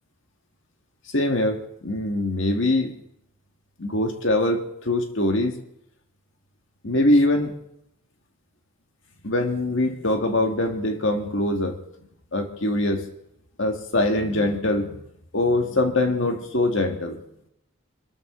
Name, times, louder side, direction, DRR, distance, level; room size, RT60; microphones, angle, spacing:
voice 1, 1.1-2.9 3.8-5.6 6.8-7.6 9.2-11.8 12.3-13.1 13.6-15.0 15.3-17.2, left 1 dB, 60° left, 4 dB, 1.9 m, -23 dB
25.5 x 13.0 x 3.9 m, 0.77 s
head